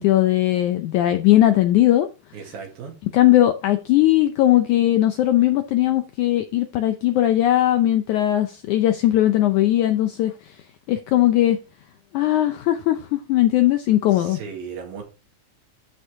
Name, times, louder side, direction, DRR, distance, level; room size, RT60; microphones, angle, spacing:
voice 1, 0.0-2.1 3.1-10.6 10.9-11.6 12.1-14.4, left 13 dB, 80° left, 1.7 m, -19 dB
voice 2, 2.3-2.9 14.2-15.0, right 6 dB, 75° right, 3.8 m, -36 dB
12.0 x 5.3 x 3.7 m
omnidirectional pair, 4.2 m